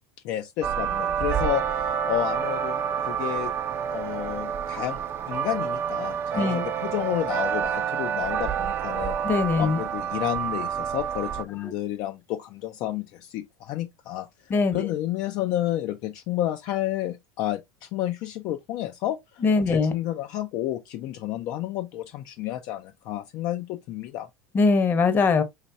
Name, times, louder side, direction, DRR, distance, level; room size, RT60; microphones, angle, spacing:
voice 1, 0.2-3.5 3.9-5.0 5.3-9.2 9.6-14.3 14.7-24.3, left 13 dB, 50° left, 0.5 m, -31 dB
sound 1, 0.6-11.4, right 8 dB, 30° right, 0.6 m, -28 dB
voice 2, 9.2-9.8 11.6-11.7 14.5-14.8 19.4-19.9 24.5-25.4, left 4 dB, 25° left, 0.9 m, -21 dB
5.7 x 3.1 x 2.6 m
supercardioid pair, 140°, 8 cm